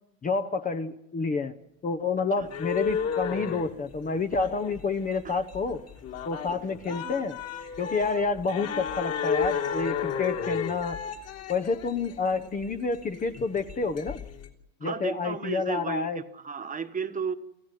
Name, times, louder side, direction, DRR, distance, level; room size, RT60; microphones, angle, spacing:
voice 1, 0.2-1.5 1.8-5.8 6.2-7.4 7.8-11.0 11.5-14.2 14.8-16.2, left 4 dB, 20° left, 7 dB, 1.0 m, -29 dB
sound 1, 2.4-14.5, left 7 dB, 40° left, 3.4 m, -33 dB
voice 2, 6.9-7.2 14.8-17.3, right 6 dB, 20° right, 8 dB, 1.4 m, -34 dB
27.5 x 15.0 x 9.2 m, 0.86 s
supercardioid pair, 125°, 38 cm